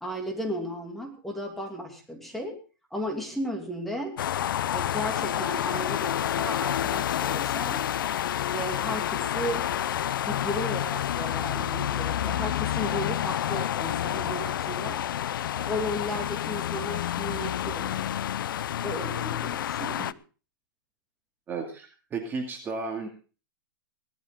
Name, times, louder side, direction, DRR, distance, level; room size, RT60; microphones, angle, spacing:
voice 1, 0.0-2.6 2.9-4.2 4.7-7.8 8.5-9.7 10.3-15.0 15.5-18.1 18.8-20.2, equal, ahead, 1 dB, 2.8 m, -35 dB
sound 1, 4.2-20.1, left 11 dB, 70° left, 0.6 m, -29 dB
voice 2, 21.5-23.1, right 4 dB, 15° right, 2 dB, 2.4 m, -34 dB
18.0 x 13.5 x 3.8 m, 0.37 s
hypercardioid pair, 150°, 12 cm